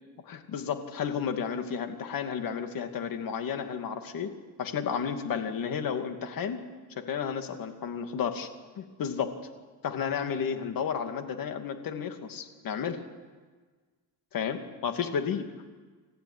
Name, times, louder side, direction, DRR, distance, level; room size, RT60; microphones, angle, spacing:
voice 1, 0.3-4.3 4.6-6.6 7.0-8.5 8.8-9.3 9.8-13.0 14.3-15.5, left 7 dB, 55° left, 7 dB, 2.6 m, -32 dB
29.0 x 14.5 x 9.8 m, 1.4 s
cardioid pair, 120°, 40 cm